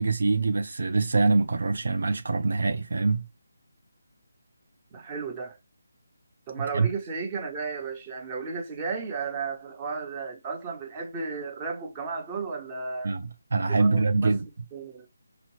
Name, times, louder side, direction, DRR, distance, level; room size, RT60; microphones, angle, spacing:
voice 1, 0.0-3.2 6.7-6.9 13.0-14.5, right 3 dB, 65° right, 0.4 m, -24 dB
voice 2, 4.9-5.6 6.5-13.1 13.7-14.4 14.7-15.1, right 4 dB, 20° right, 0.8 m, -34 dB
4.2 x 2.0 x 2.9 m
figure-of-eight pair, 160°, 0 cm